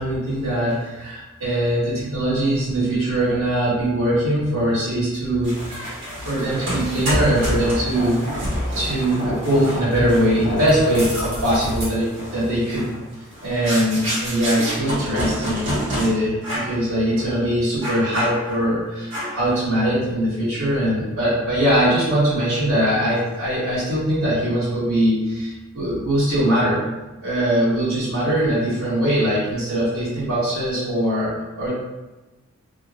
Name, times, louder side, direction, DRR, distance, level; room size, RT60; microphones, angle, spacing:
voice 1, 0.0-5.6 6.2-8.3 8.7-12.9 13.4-26.8 27.2-31.7, right 1 dB, 75° right, -10 dB, 1.3 m, -21 dB
sound 1, 5.4-16.1 16.4-16.8 17.1-17.3 17.8-18.7 19.1-19.5, equal, 60° right, 1.2 m, -28 dB
2.8 x 2.6 x 2.4 m, 1.1 s
head